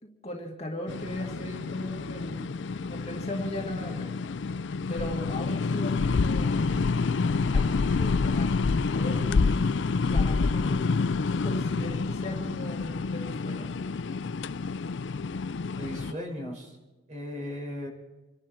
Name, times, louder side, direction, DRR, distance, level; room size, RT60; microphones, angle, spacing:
voice 1, 0.0-4.1 4.9-7.0 7.5-9.8 10.1-10.8 11.4-13.8, left 1 dB, 35° left, 0 dB, 2.2 m, -38 dB
sound 1, 0.9-16.1, left 4 dB, 75° left, 0.5 m, -28 dB
voice 2, 15.8-16.8 17.1-17.9, left 1 dB, 40° right, -1 dB, 5.7 m, -37 dB
27.5 x 11.5 x 4.5 m, 1.2 s
head